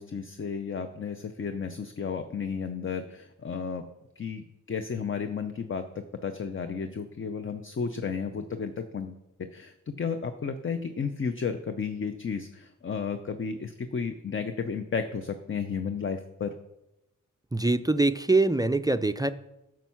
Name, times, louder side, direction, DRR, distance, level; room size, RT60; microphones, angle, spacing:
voice 1, 0.0-3.8 4.2-9.2 9.5-16.5, left 6 dB, 40° left, 8 dB, 0.6 m, -33 dB
voice 2, 17.5-19.3, right 2 dB, 10° right, 10 dB, 0.4 m, -24 dB
9.0 x 6.2 x 5.7 m, 0.91 s
wide cardioid pair, 70°, 33 cm